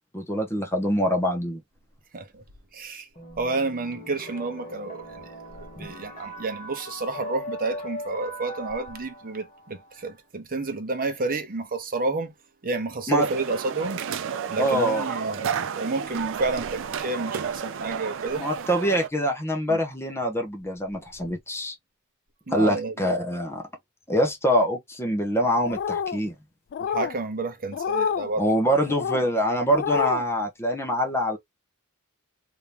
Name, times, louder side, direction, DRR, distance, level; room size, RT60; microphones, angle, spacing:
voice 1, 0.1-1.6 5.8-5.9 13.1-13.3 14.6-15.1 18.3-21.7 22.5-23.6 24.1-26.3 28.4-31.4, equal, 10° left, 0.9 m, -24 dB
voice 2, 2.7-3.1 3.4-5.2 5.6-12.3 12.6-14.0 14.5-18.5 19.7-19.8 22.5-22.9 26.8-28.5, right 3 dB, 40° right, 0.9 m, -30 dB
sound 1, 3.1-10.2, equal, 35° left, 1.6 m, -40 dB
sound 2, 13.2-19.1, right 7 dB, 60° right, 0.5 m, -32 dB
sound 3, 25.6-26.2 26.7-27.1 27.7-28.3 28.9-29.2 29.7-30.2, left 7 dB, 50° left, 0.3 m, -27 dB
3.0 x 2.7 x 3.2 m
head